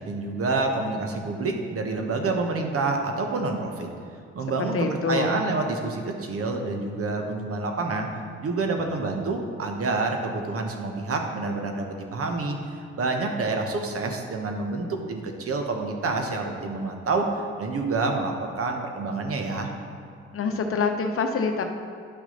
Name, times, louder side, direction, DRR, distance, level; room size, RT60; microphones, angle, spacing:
voice 1, 0.1-3.9 4.3-8.1 8.4-12.6 13.0-17.3 17.6-19.7, right 3 dB, 50° right, 3 dB, 1.2 m, -28 dB
voice 2, 4.6-5.4 20.3-21.6, left 4 dB, 45° left, 5 dB, 0.9 m, -25 dB
10.0 x 6.1 x 4.0 m, 2.4 s
hypercardioid pair, 50°, 30 cm